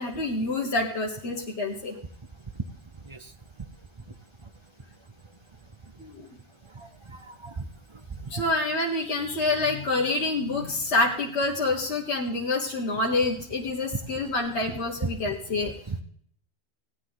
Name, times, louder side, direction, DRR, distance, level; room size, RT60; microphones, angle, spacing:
voice 1, 0.0-2.0 6.0-6.3 8.3-15.7, left 2 dB, 70° left, -2 dB, 1.8 m, -27 dB
voice 2, 6.8-7.6 8.2-8.4 15.9-16.0, right 4 dB, 30° right, 8 dB, 0.7 m, -37 dB
16.5 x 9.6 x 4.0 m, 0.63 s
omnidirectional pair, 1.2 m